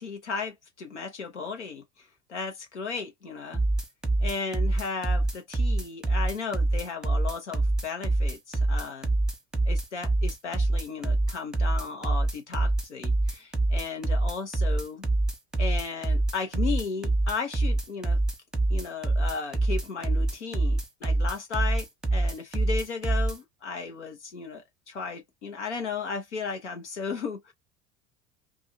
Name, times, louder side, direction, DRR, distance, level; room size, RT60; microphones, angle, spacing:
voice 1, 0.0-3.6 4.2-9.1 9.7-15.0 15.6-18.2 18.7-27.5, left 5 dB, 90° left, 0.9 m, -35 dB
sound 1, 3.5-23.4, right 2 dB, ahead, 0.8 m, -25 dB
2.6 x 2.5 x 2.5 m
hypercardioid pair, 75°, 34 cm